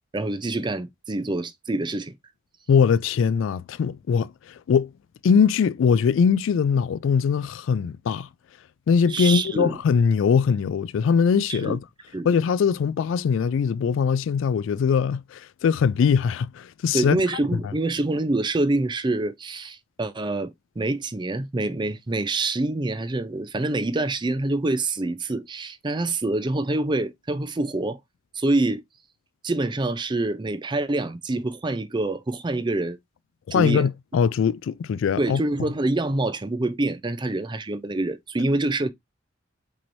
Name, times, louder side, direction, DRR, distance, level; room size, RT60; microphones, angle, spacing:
voice 1, 0.1-2.1 9.1-9.8 11.5-11.8 12.1-12.3 16.9-28.0 28.3-28.8 29.4-33.0 33.5-33.9 35.2-38.9, right 2 dB, 25° right, 0.5 m, -26 dB
voice 2, 2.7-4.3 4.7-4.9 5.2-8.3 8.9-11.8 12.2-17.2 33.5-35.4, left 6 dB, 75° left, 0.3 m, -21 dB
6.1 x 3.1 x 2.6 m
head